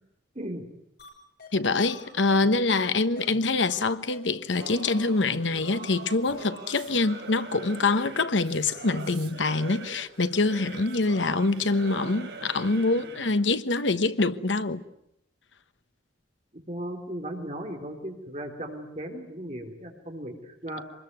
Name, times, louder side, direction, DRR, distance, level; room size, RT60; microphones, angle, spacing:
sound 1, 1.0-1.1 1.4-1.5 1.8-3.8 4.1-4.2 4.5-4.7 5.0-5.1 5.4-5.6 5.9-6.0 6.3-6.5 6.8-6.9 7.2-7.3, left 3 dB, 55° left, 7.2 m, -46 dB
voice 1, 1.5-14.8, left 3 dB, 85° left, 1.2 m, -25 dB
Singing / Musical instrument, 4.6-13.4, right 3 dB, 65° right, 3.6 m, -43 dB
voice 2, 16.7-20.8, right 1 dB, 35° right, 3.4 m, -36 dB
25.0 x 21.0 x 9.5 m
head